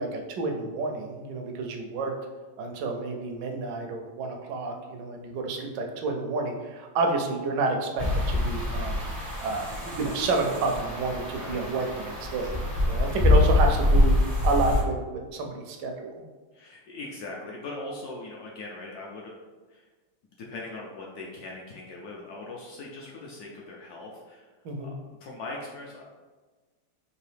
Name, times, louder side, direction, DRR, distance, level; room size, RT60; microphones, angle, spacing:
voice 1, 0.0-2.1 2.6-15.0 15.3-16.2 24.6-24.9, right 3 dB, 75° right, 3 dB, 1.1 m, -30 dB
sound 1, 8.0-14.8, left 1 dB, 20° right, 0.5 m, -25 dB
voice 2, 11.3-11.7 13.0-13.2 16.5-19.3 19.7-19.8 20.5-24.4 24.8-24.9 25.2-26.1, left 2 dB, 75° left, -3 dB, 0.9 m, -40 dB
4.7 x 2.7 x 3.3 m, 1.3 s
omnidirectional pair, 2.2 m